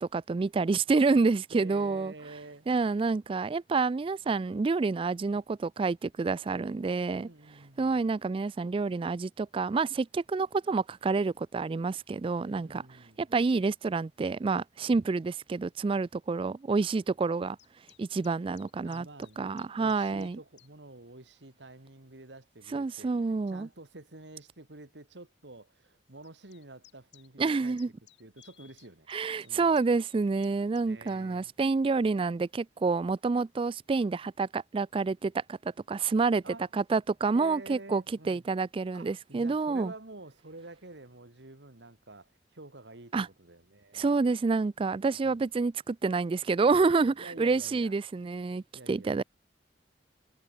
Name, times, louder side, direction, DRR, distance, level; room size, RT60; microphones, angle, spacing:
voice 1, 0.0-2.1 2.7-7.3 7.8-12.8 13.2-17.6 18.0-19.1 19.4-20.4 22.7-23.7 27.4-27.9 29.1-35.6 35.9-36.4 36.7-39.9 43.1-43.3 43.9-49.2, right 4 dB, 30° right, 0.3 m, -28 dB
voice 2, 1.5-2.7 7.1-8.0 12.4-13.3 18.8-27.7 28.2-29.1 29.4-29.8 30.9-31.5 36.4-36.7 37.3-38.4 38.9-44.1 45.2-45.4 47.1-47.9 48.7-49.2, right 2 dB, 80° right, 2.4 m, -49 dB
sound 1, 17.6-20.7 21.4-21.6 22.5-22.6 23.7-23.8 24.1-24.2 24.5-24.6 26.2-31.2, left 14 dB, 80° left, 5.7 m, -59 dB
sound 2, 20.8-30.5, left 7 dB, 30° left, 7.5 m, -71 dB
head